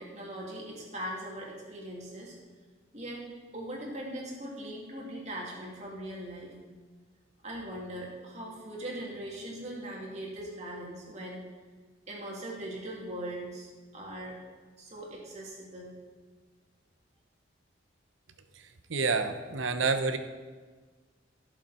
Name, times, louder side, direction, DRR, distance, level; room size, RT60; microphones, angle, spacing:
voice 1, 0.0-2.4 2.9-3.2 3.5-6.5 7.4-11.5 12.1-14.4 14.8-16.0, right 1 dB, 35° right, -3 dB, 2.8 m, -40 dB
voice 2, 18.9-20.2, right 4 dB, 75° right, 9 dB, 0.9 m, -28 dB
17.0 x 7.2 x 4.3 m, 1.4 s
head